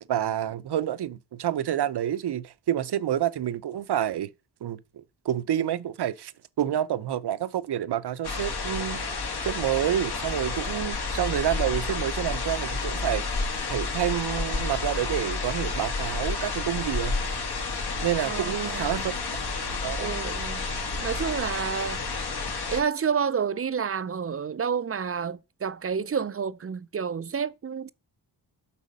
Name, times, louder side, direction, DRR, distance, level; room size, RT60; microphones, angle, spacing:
voice 1, 0.1-4.3 4.6-6.3 6.6-9.0 9.4-13.2 13.7-17.1 18.0-19.1 19.8-20.1, right 11 dB, 70° right, 0.7 m, -28 dB
sound 1, 8.2-22.8, left 3 dB, 65° left, 2.6 m, -30 dB
voice 2, 18.3-19.0 20.0-20.7 21.0-22.0 22.7-27.9, right 6 dB, 35° right, 0.5 m, -29 dB
8.4 x 5.7 x 5.3 m
cardioid pair, 95°, 42 cm